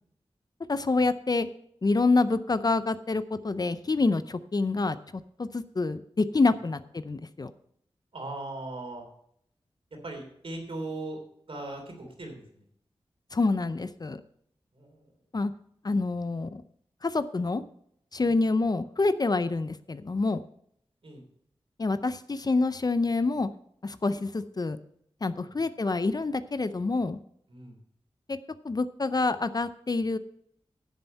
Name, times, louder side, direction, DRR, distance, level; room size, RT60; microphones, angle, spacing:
voice 1, 0.7-1.5 1.8-5.0 5.4-7.5 13.3-14.2 15.3-15.5 15.8-16.6 17.0-17.6 18.1-20.4 21.8-23.5 23.8-24.8 25.2-27.2 28.3-28.4 28.6-30.2, left 3 dB, 40° left, 13 dB, 0.5 m, -27 dB
voice 2, 8.1-9.0 10.0-11.2 11.5-12.6 14.7-15.1 18.2-18.4 21.0-21.2 25.4-25.6 27.5-27.8, right 2 dB, 65° right, 3 dB, 3.0 m, -39 dB
11.5 x 7.0 x 5.4 m, 0.70 s
wide cardioid pair, 75°, 10 cm